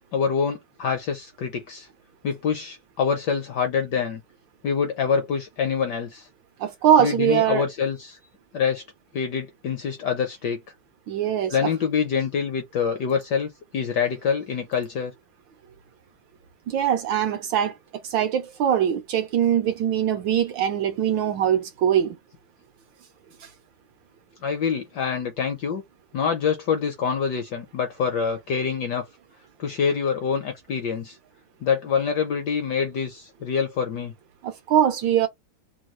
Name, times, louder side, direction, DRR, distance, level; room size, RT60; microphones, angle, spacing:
voice 1, 0.1-1.9 2.2-4.2 4.6-6.3 7.0-8.2 8.5-8.8 9.1-10.6 11.5-15.1 24.4-25.8 26.1-29.1 29.6-31.2 31.6-34.1, left 6 dB, 70° left, 1.0 m, -26 dB
voice 2, 6.6-7.6 11.1-11.7 16.7-17.7 18.0-22.2 34.4-35.3, right 9 dB, 75° right, 1.1 m, -22 dB
3.4 x 2.2 x 3.0 m
omnidirectional pair, 2.4 m